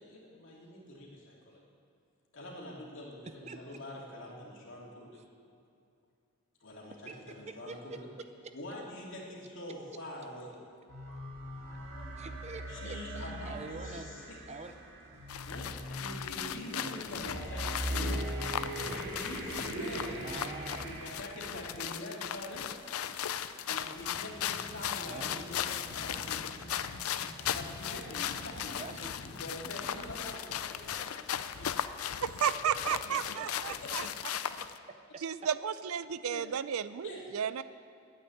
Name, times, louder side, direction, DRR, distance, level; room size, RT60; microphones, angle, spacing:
voice 1, 0.0-1.6 2.3-5.2 6.6-8.1 8.5-10.5 12.7-14.4 15.4-17.8 18.8-20.2 20.8-22.7 23.7-26.5 27.5-28.8 29.2-31.7 33.1-33.2 33.4-33.5 33.8-33.9 36.3-36.5 37.0-37.3, left 1 dB, 60° left, -3 dB, 2.7 m, -45 dB
voice 2, 3.3-3.6 6.9-8.5 12.2-14.2 14.5-14.7 20.2-21.0 25.0-25.5 28.8-29.2 32.6-33.8 34.3-34.4 34.9-35.0, right 3 dB, 30° right, 8 dB, 0.6 m, -46 dB
sound 1, 10.9-21.1, right 1 dB, 65° right, 2.5 m, -40 dB
sound 2, 12.4-13.7 14.6-21.6 22.8-30.1, right 1 dB, 10° right, 4.1 m, -54 dB
sound 3, 15.3-34.8, left 9 dB, 90° left, 0.5 m, -37 dB
voice 3, 32.2-34.0 35.2-37.6, right 8 dB, 85° right, 15 dB, 0.4 m, -33 dB
9.8 x 8.9 x 9.2 m, 2.5 s
head